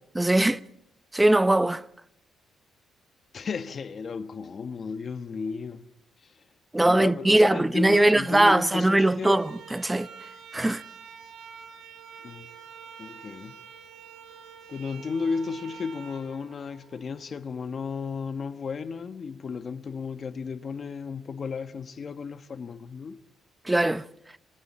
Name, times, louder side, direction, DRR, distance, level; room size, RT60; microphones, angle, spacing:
voice 1, 0.2-0.6 1.1-1.8 6.7-10.1 10.5-10.8 23.6-24.1, right 1 dB, 10° right, 0.8 m, -21 dB
voice 2, 3.3-5.9 6.2-6.4 6.8-9.4 12.2-12.5 13.0-13.6 14.7-23.2, left 5 dB, 45° left, 1.2 m, -34 dB
sound 1, 9.1-17.3, right 7 dB, 75° right, 6.0 m, -47 dB
26.5 x 25.5 x 4.3 m
cardioid pair, 90°, 0 cm